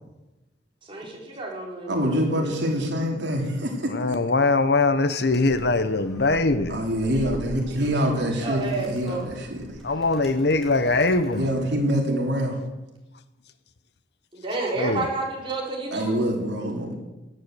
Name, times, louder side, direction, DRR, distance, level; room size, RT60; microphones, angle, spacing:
voice 1, 0.8-2.6 8.1-9.2 14.3-16.2, right 3 dB, 25° right, 4.4 m, -31 dB
voice 2, 1.9-4.2 6.7-9.6 11.4-12.6 15.9-17.0, equal, 65° right, 3.4 m, -25 dB
voice 3, 3.9-6.8 9.8-11.5 14.8-15.0, left 3 dB, 60° left, 0.9 m, -22 dB
Animal, 5.3-11.7, equal, ahead, 3.2 m, -43 dB
17.5 x 10.0 x 7.8 m
head